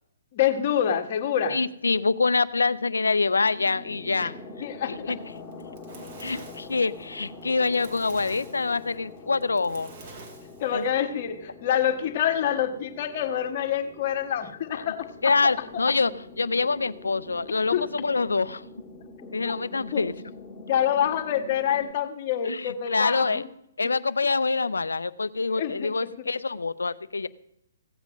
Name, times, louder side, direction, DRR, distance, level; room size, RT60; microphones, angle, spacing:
voice 1, 0.3-1.6 4.6-5.2 10.6-15.3 15.7-15.8 17.7-17.9 19.9-20.0 20.7-23.5 25.5-26.1, left 9 dB, 45° left, 5 dB, 1.7 m, -26 dB
voice 2, 1.5-4.4 4.9-5.2 6.2-9.9 10.7-10.8 14.7-14.9 15.2-18.6 19.3-20.1 22.4-23.4 23.8-27.3, left 4 dB, 85° left, 17 dB, 0.6 m, -25 dB
sound 1, 2.5-21.9, left 3 dB, 10° left, 2.2 m, -45 dB
Fire, 5.4-10.9, right 3 dB, 50° right, 3.5 m, -46 dB
16.0 x 8.2 x 5.2 m, 0.78 s
hypercardioid pair, 135°, 0 cm